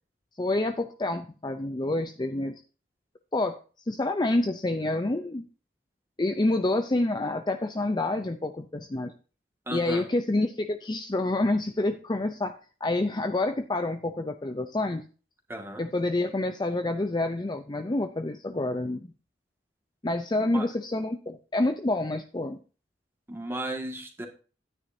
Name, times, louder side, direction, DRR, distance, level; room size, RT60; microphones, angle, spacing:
voice 1, 0.4-2.6 3.3-3.6 3.8-5.5 6.2-9.1 9.7-15.0 15.8-19.1 20.0-22.6, left 2 dB, 25° left, 7 dB, 0.5 m, -28 dB
voice 2, 9.7-10.0 15.5-15.9 20.4-20.7 23.3-24.3, right 1 dB, 15° right, 2 dB, 1.9 m, -35 dB
11.5 x 9.7 x 2.7 m, 0.36 s
head